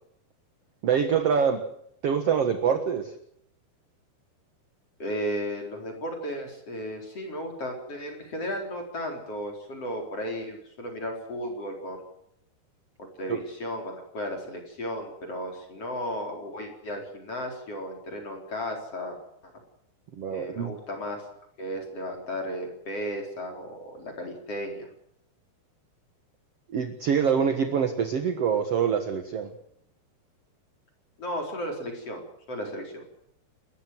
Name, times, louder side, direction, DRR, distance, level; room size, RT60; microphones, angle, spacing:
voice 1, 0.8-1.6 2.0-3.1 13.3-13.4 20.2-20.8 26.7-29.5, right 7 dB, 55° right, 7 dB, 1.7 m, -25 dB
voice 2, 5.0-12.0 13.0-19.5 20.3-21.2 21.6-24.9 31.2-33.3, equal, 35° left, 2 dB, 5.0 m, -35 dB
29.5 x 14.0 x 7.8 m, 0.72 s
omnidirectional pair, 5.0 m